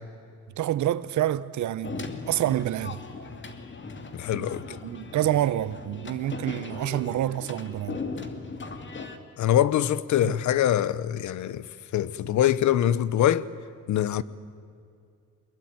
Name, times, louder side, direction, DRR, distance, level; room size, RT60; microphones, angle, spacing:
voice 1, 0.6-3.0 4.3-8.0 10.2-10.4, right 12 dB, 70° right, 1.0 m, -28 dB
sound 1, 1.8-9.2, left 4 dB, 40° left, 2.6 m, -38 dB
voice 2, 4.1-4.6 9.4-11.7 11.9-13.5 13.9-14.2, left 11 dB, 70° left, 1.0 m, -23 dB
24.0 x 21.5 x 9.6 m
cardioid pair, 90°, 30 cm